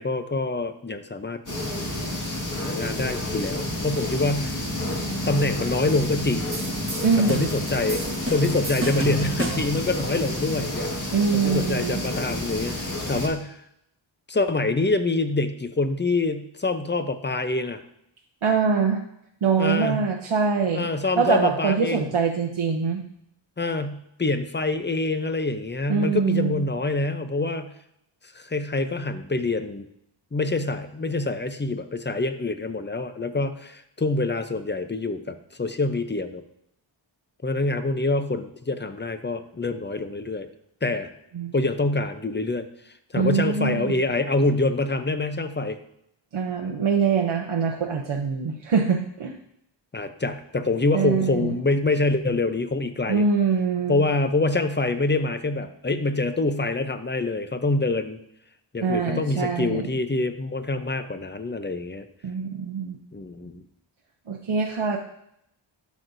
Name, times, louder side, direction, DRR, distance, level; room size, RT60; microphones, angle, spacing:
voice 1, 0.0-1.4 2.6-4.6 5.3-6.6 7.2-10.9 11.3-13.6 14.3-17.8 19.6-20.1 20.7-22.1 23.6-27.7 28.3-29.9 30.3-36.4 37.4-40.5 40.8-41.1 41.5-45.8 49.9-53.3 53.9-58.2 58.7-62.1 63.1-63.6, left 2 dB, 25° left, 9 dB, 0.6 m, -26 dB
sound 1, 1.5-13.3, left 1 dB, 40° left, 1.8 m, -30 dB
sound 2, 6.5-9.8, right 2 dB, 25° right, 1.1 m, -32 dB
voice 2, 7.0-7.5 11.1-12.0 18.4-19.0 19.4-20.9 21.2-23.0 25.9-26.6 41.3-41.5 43.1-44.0 46.3-49.3 50.9-51.5 53.1-53.9 58.8-59.9 62.2-63.0 64.3-65.0, right 5 dB, 80° right, 1 dB, 0.8 m, -23 dB
11.5 x 6.2 x 2.6 m, 0.74 s
wide cardioid pair, 75°, 48 cm